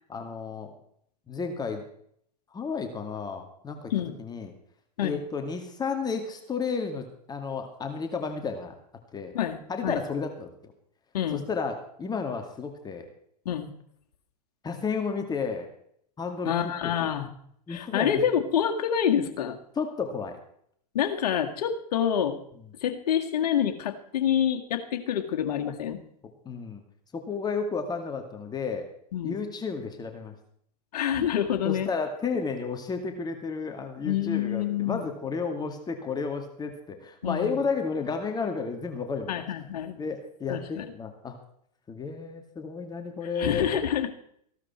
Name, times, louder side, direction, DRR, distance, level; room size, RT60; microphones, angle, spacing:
voice 1, 0.1-0.8 1.3-1.8 2.5-3.9 4.2-4.5 5.0-8.7 9.1-9.3 9.7-10.7 11.3-13.1 14.6-15.7 16.2-16.5 17.7-18.2 19.8-20.4 26.4-26.8 27.1-28.9 29.2-30.3 31.6-39.4 40.0-41.4 41.9-43.7, left 5 dB, 20° left, 5 dB, 2.2 m, -32 dB
voice 2, 9.3-10.0 11.1-11.4 13.5-13.7 16.5-17.3 17.7-19.6 20.9-22.4 22.8-26.0 29.1-29.4 30.9-31.9 34.0-35.1 37.2-37.6 39.3-40.0 40.5-40.9 43.4-44.1, left 9 dB, 70° left, 5 dB, 2.0 m, -27 dB
15.5 x 12.5 x 4.4 m, 0.66 s
hypercardioid pair, 105°, 21 cm